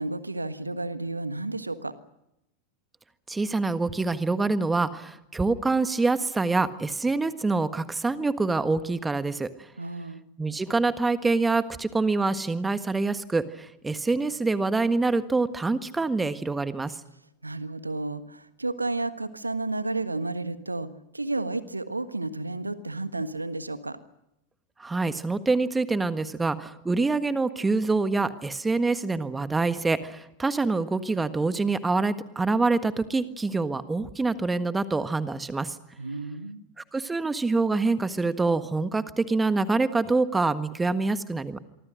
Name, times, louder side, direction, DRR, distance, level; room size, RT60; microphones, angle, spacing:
voice 1, 0.0-1.9 9.8-10.2 17.4-24.0 36.0-36.6, right 2 dB, 80° right, 12 dB, 1.5 m, -32 dB
voice 2, 3.3-9.5 10.4-17.0 24.8-35.8 36.9-41.6, right 3 dB, 10° right, 12 dB, 1.5 m, -26 dB
26.5 x 24.0 x 6.4 m, 0.86 s
figure-of-eight pair, 90°, 0 cm